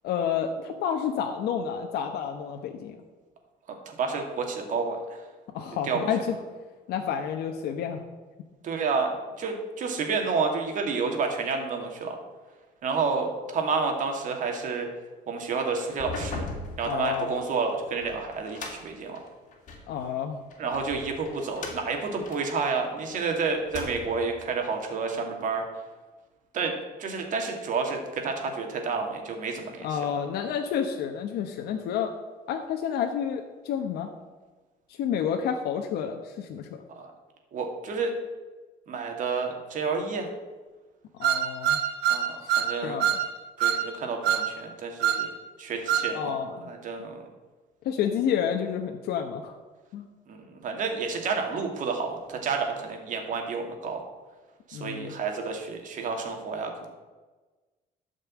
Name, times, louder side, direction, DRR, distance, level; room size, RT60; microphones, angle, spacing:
voice 1, 0.0-3.0 5.5-6.4 6.9-8.0 16.8-17.3 19.9-20.5 29.8-32.1 32.5-34.1 34.9-36.8 41.2-41.8 42.4-42.5 42.8-43.1 46.1-46.7 47.8-49.6 49.9-50.1 54.7-55.2, left 8 dB, 75° left, 3 dB, 1.1 m, -30 dB
voice 2, 3.9-5.2 5.9-6.1 8.6-12.2 12.8-14.9 15.3-16.4 16.8-19.2 20.6-25.6 26.5-29.9 37.0-37.1 37.5-38.1 38.9-40.3 42.1-42.3 42.6-43.0 43.6-45.3 45.6-46.3 46.6-47.2 50.3-54.0 54.7-56.9, right 4 dB, 50° right, 3 dB, 2.2 m, -30 dB
sound 1, 15.9-19.9 20.5-23.2 23.6-24.3, left 3 dB, 50° left, 2.6 m, -39 dB
sound 2, 41.2-42.7 43.0-43.2 43.6-43.8 44.2-44.5 45.0-45.2 45.9-46.1, right 10 dB, 85° right, 1.2 m, -24 dB
12.5 x 5.4 x 8.5 m, 1.3 s
cardioid pair, 145°, 16 cm